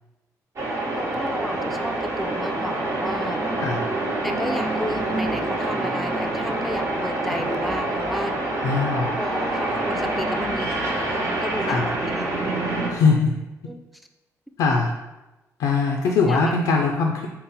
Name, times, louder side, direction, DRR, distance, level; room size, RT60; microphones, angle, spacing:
sound 1, 0.6-12.9, right 2 dB, 55° right, 0.8 m, -26 dB
voice 1, 0.9-3.4 4.2-8.3 9.1-12.3 13.6-13.8 16.2-16.5, equal, ahead, 5 dB, 0.4 m, -32 dB
Guitar, 5.5-6.8, left 2 dB, 85° right, 1.3 m, -45 dB
voice 2, 8.6-9.1 11.6-11.9 12.9-13.3 14.6-14.9 15.6-17.3, left 4 dB, 85° left, 1 dB, 0.4 m, -21 dB
3.8 x 2.1 x 4.0 m, 1.0 s
cardioid pair, 85°, 6 cm